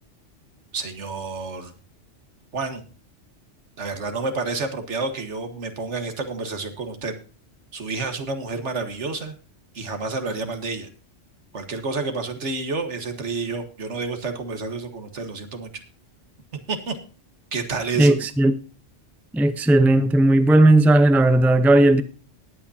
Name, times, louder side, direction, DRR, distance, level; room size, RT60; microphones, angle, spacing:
voice 1, 0.7-1.7 2.5-2.8 3.8-7.1 7.7-9.4 9.7-10.9 11.5-15.8 16.5-17.0 17.5-18.2, right 4 dB, 70° right, 1.8 m, -29 dB
voice 2, 18.0-18.5 19.3-22.0, right 1 dB, ahead, 0.6 m, -16 dB
19.5 x 8.7 x 2.7 m
omnidirectional pair, 1.2 m